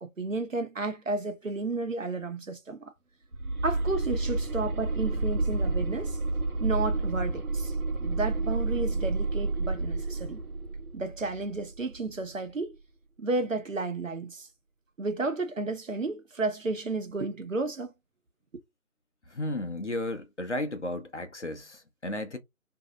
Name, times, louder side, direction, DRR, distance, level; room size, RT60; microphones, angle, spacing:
voice 1, 0.0-2.9 3.6-6.2 6.6-7.7 8.0-10.4 10.9-12.8 13.2-14.5 15.0-17.9, right 3 dB, 60° right, 0.7 m, -32 dB
sound 1, 3.3-12.2, right 2 dB, 85° right, 0.9 m, -30 dB
voice 2, 19.3-22.4, left 1 dB, 55° left, 0.6 m, -34 dB
2.6 x 2.0 x 3.5 m
figure-of-eight pair, 175°, 43 cm